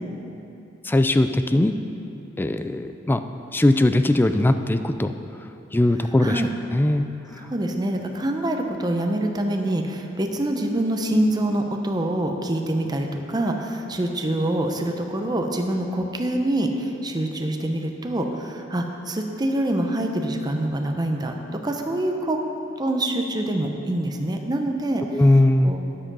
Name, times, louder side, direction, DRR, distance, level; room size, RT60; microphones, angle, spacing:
voice 1, 0.8-1.7 2.4-3.2 3.5-5.1 5.7-6.4 6.7-7.1 25.1-25.7, left 1 dB, 10° left, 9 dB, 0.3 m, -19 dB
voice 2, 7.3-21.3 21.6-22.4 22.8-25.0 25.6-25.8, right 1 dB, 20° right, 3 dB, 0.7 m, -25 dB
9.9 x 7.7 x 5.4 m, 2.8 s
head